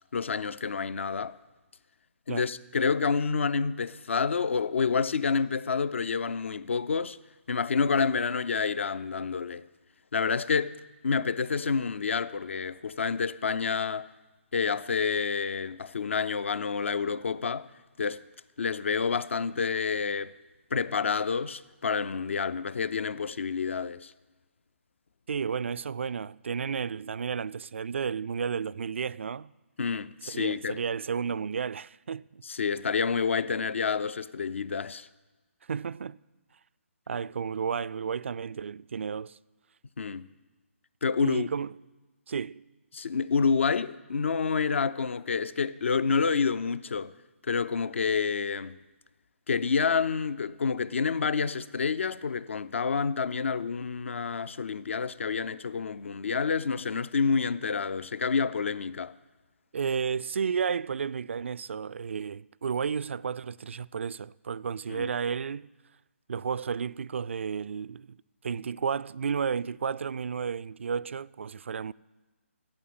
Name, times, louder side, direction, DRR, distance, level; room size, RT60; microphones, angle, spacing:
voice 1, 0.1-1.4 2.3-7.2 7.5-9.7 10.1-10.8 11.0-14.1 14.5-17.7 18.0-18.2 18.6-20.3 20.7-24.1 29.8-30.8 32.4-35.1 40.0-40.3 41.0-41.5 42.9-47.1 47.5-48.8 49.5-59.1 64.9-65.1, left 5 dB, 65° left, 0.6 m, -28 dB
voice 2, 25.3-29.5 30.3-32.4 35.7-36.2 37.1-39.4 41.2-41.7 42.3-42.6 59.7-65.7 66.3-68.2 68.4-71.9, right 6 dB, 60° right, 0.3 m, -32 dB
13.0 x 8.5 x 7.7 m
figure-of-eight pair, 150°, 7 cm